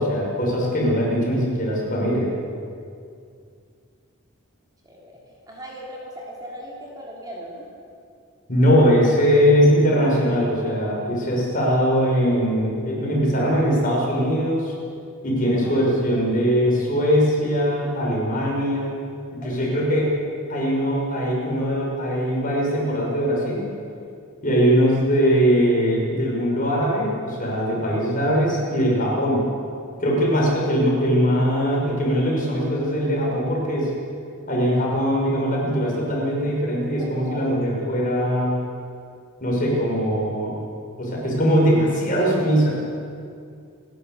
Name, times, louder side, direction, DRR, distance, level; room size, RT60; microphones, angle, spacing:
voice 1, 0.0-2.3 8.5-14.7 15.2-18.9 19.3-20.1 20.5-23.6 24.4-29.4 30.0-33.9 34.5-38.6 39.4-40.5 41.0-42.7, equal, 40° left, -3 dB, 6.3 m, -21 dB
voice 2, 4.8-5.2 5.5-7.7 11.5-11.6 15.6-15.7 19.4-20.0 37.0-37.4, equal, 15° right, -3 dB, 3.3 m, -38 dB
29.5 x 12.0 x 8.2 m, 2.4 s
head